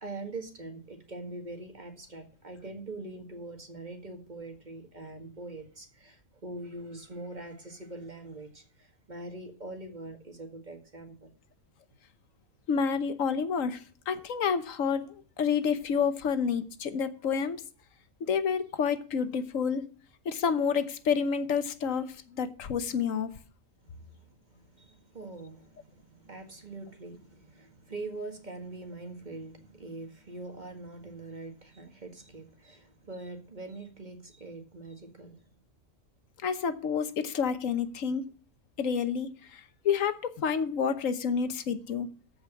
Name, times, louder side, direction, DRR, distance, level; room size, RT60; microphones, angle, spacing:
voice 1, 0.0-11.3 23.8-35.5, right 2 dB, 35° right, 2.0 m, -43 dB
voice 2, 12.7-17.6 18.2-19.9 20.2-23.3 36.4-38.3 38.8-42.1, left 6 dB, 85° left, 1.4 m, -29 dB
14.0 x 5.2 x 6.0 m
omnidirectional pair, 1.3 m